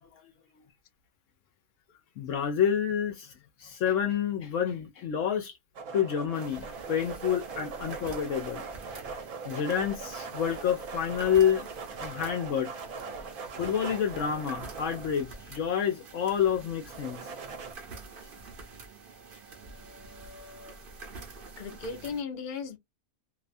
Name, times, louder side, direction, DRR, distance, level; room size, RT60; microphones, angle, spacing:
voice 1, 2.2-3.3 3.6-5.5 5.9-8.6 9.4-11.7 12.0-12.7 13.6-17.2, left 8 dB, 70° left, 0.9 m, -28 dB
sound 1, 5.7-15.6 16.9-17.7, right 5 dB, 75° right, 1.1 m, -40 dB
sound 2, 6.3-22.2, right 3 dB, 50° right, 0.7 m, -47 dB
voice 2, 21.6-22.8, left 5 dB, 50° left, 0.6 m, -36 dB
2.7 x 2.2 x 2.5 m
omnidirectional pair, 1.5 m